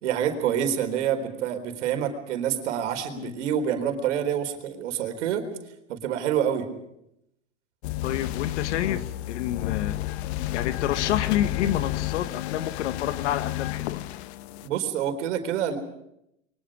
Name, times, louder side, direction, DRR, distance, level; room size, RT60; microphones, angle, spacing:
voice 1, 0.0-5.4 5.9-6.7 14.6-15.8, right 9 dB, 80° right, 6 dB, 4.2 m, -27 dB
sound 1, 7.8-14.7, left 16 dB, 65° left, 1.2 m, -31 dB
voice 2, 8.0-10.0 10.5-14.1, left 11 dB, 80° left, 12 dB, 1.8 m, -28 dB
29.5 x 23.5 x 5.0 m, 0.78 s
supercardioid pair, 120°, 35 cm